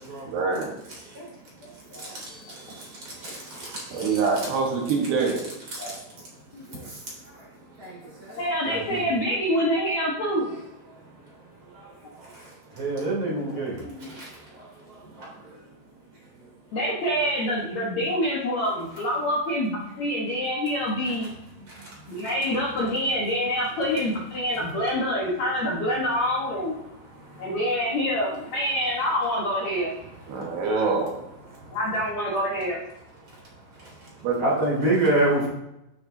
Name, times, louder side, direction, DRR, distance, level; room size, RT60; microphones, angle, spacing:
voice 1, 0.3-0.7 3.9-5.4 30.3-31.2 34.2-34.4, right 4 dB, 75° right, 0 dB, 3.4 m, -24 dB
voice 2, 1.6-2.1 5.8-6.0 6.5-6.9 8.4-10.6 13.3-14.2 16.7-21.3 22.1-26.7 27.4-29.9 31.7-32.8 35.1-35.2, equal, 60° left, -5 dB, 1.9 m, -26 dB
voice 3, 8.7-9.0 12.8-13.8 14.2-14.3 34.4-35.5, right 2 dB, 30° right, -5 dB, 3.6 m, -25 dB
13.5 x 6.6 x 2.8 m, 0.88 s
omnidirectional pair, 4.9 m